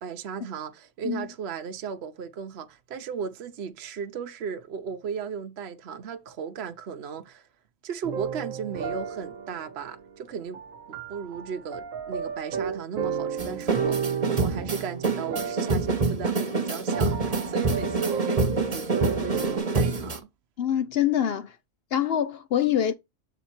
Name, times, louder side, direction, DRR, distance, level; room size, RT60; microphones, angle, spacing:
voice 1, 0.0-7.5 7.8-10.6 10.9-20.3, right 6 dB, 55° right, 1.0 m, -36 dB
sound 1, 8.0-19.6, right 6 dB, 90° right, 1.4 m, -34 dB
sound 2, 13.4-20.2, right 3 dB, 30° right, 1.1 m, -26 dB
voice 2, 20.6-21.5 21.9-22.9, left 10 dB, 60° left, 0.7 m, -25 dB
7.2 x 3.9 x 4.3 m
omnidirectional pair, 1.4 m